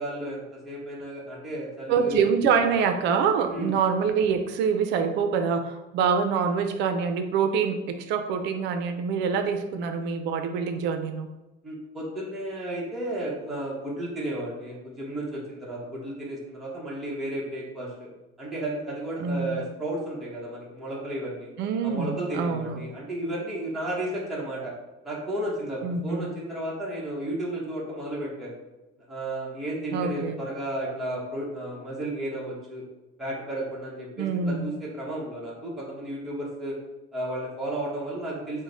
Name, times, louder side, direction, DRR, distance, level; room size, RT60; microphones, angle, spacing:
voice 1, 0.0-2.2 3.5-3.7 11.6-18.1 18.4-21.5 21.8-24.7 25.0-28.6 29.1-32.8 33.2-36.8 37.1-38.6, right 1 dB, ahead, -7 dB, 0.8 m, -33 dB
voice 2, 1.9-11.3 19.2-19.6 21.6-22.9 25.8-26.3 29.9-30.4 34.2-34.7, right 6 dB, 55° right, 7 dB, 0.5 m, -25 dB
5.1 x 2.1 x 3.8 m, 1.1 s
cardioid pair, 160°, 21 cm